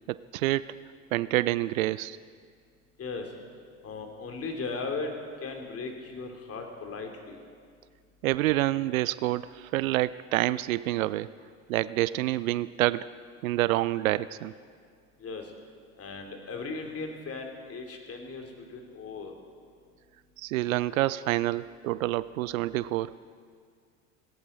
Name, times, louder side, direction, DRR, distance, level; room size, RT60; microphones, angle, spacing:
voice 1, 0.1-0.7 1.1-2.2 8.2-11.3 11.7-13.1 13.4-14.5 20.4-23.2, right 16 dB, 70° right, 18 dB, 0.5 m, -27 dB
voice 2, 3.8-5.1 5.4-7.4 15.2-15.4 16.0-19.3, left 4 dB, 35° left, 3 dB, 2.9 m, -37 dB
19.0 x 17.5 x 4.3 m, 2.1 s
figure-of-eight pair, 70°, 43 cm